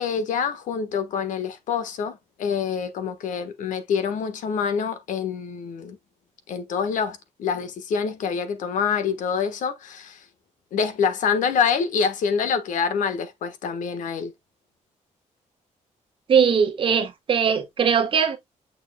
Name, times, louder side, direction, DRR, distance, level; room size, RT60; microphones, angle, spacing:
voice 1, 0.0-6.0 6.5-10.2 10.7-14.3, left 6 dB, 85° left, 1.4 m, -26 dB
voice 2, 16.3-18.4, right 7 dB, 45° right, 1.3 m, -20 dB
6.6 x 6.4 x 2.3 m
cardioid pair, 160°, 13 cm